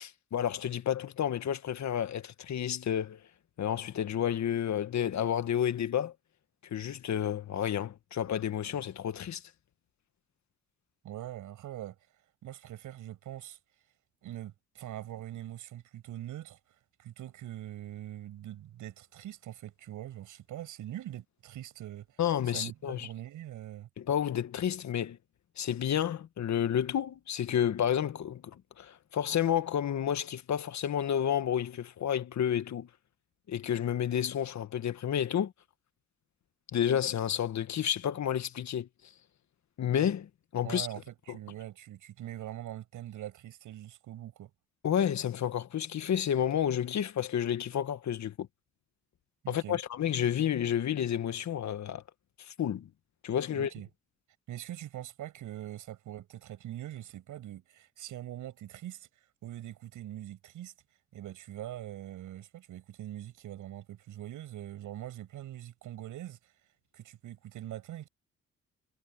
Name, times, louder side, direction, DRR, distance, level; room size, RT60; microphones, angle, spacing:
voice 1, 0.0-3.2 3.6-6.1 6.6-9.4 22.2-23.1 24.0-25.2 25.6-32.9 33.5-35.5 36.7-38.9 39.8-40.9 41.3-41.4 44.8-48.5 49.5-52.0 52.4-52.9 53.2-53.7, left 9 dB, 65° left, 1.6 m, -30 dB
voice 2, 11.0-12.0 12.4-13.6 14.2-16.6 17.0-22.2 22.5-23.9 40.6-44.5 49.4-49.8 53.5-53.9 54.5-59.1 59.4-60.7 61.1-66.5 66.9-68.1, right 13 dB, 85° right, 7.2 m, -43 dB
supercardioid pair, 55°, 30 cm